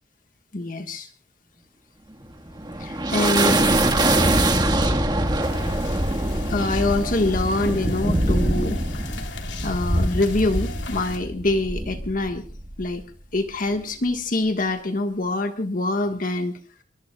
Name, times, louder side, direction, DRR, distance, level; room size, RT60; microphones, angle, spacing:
voice 1, 0.5-1.1 2.8-3.7 6.5-8.8 9.6-12.4 12.8-13.0 13.3-16.6, left 2 dB, 50° left, 6 dB, 1.5 m, -25 dB
sound 1, 2.2-13.0, right 1 dB, 25° right, 1.6 m, -23 dB
sound 2, 5.4-11.2, left 3 dB, 75° left, 3.1 m, -37 dB
27.0 x 22.5 x 2.3 m, 0.39 s
head